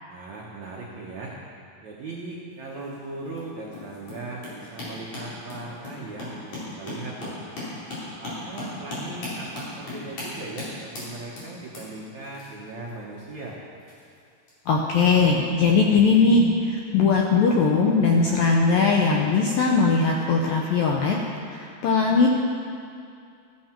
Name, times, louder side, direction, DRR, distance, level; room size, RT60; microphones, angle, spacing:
voice 1, 0.1-1.4 1.8-7.4 8.1-13.6, right 2 dB, 85° right, -3 dB, 1.6 m, -38 dB
sound 1, 2.5-14.5 15.5-15.7 16.0-16.1, left 2 dB, 40° left, 4.8 m, -38 dB
voice 2, 14.7-21.2 21.5-22.3, left 4 dB, 80° left, -1 dB, 2.1 m, -20 dB
14.5 x 13.5 x 4.5 m, 2.4 s
omnidirectional pair, 5.1 m